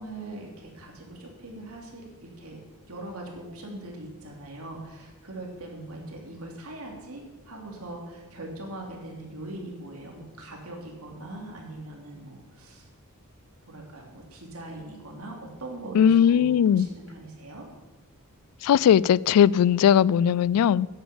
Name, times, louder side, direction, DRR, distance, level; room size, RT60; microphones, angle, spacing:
voice 1, 0.0-2.6 2.9-12.9 13.6-17.7, right 2 dB, 75° right, 3.0 m, -41 dB
voice 2, 15.9-16.9 18.6-20.9, left 9 dB, 90° left, 0.3 m, -19 dB
10.0 x 8.8 x 7.1 m
head